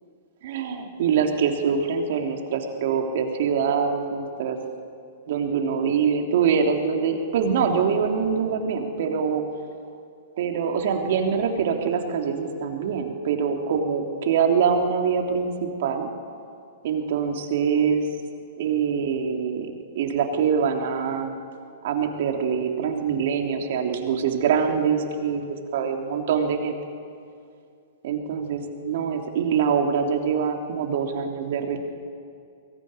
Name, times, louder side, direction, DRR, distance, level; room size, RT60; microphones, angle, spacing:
voice 1, 0.4-4.6 5.3-9.4 10.4-16.1 16.8-18.1 18.6-21.3 21.8-26.7 28.0-31.8, right 6 dB, 55° right, 3 dB, 3.2 m, -24 dB
23.0 x 19.0 x 9.6 m, 2.4 s
figure-of-eight pair, 110°, 0 cm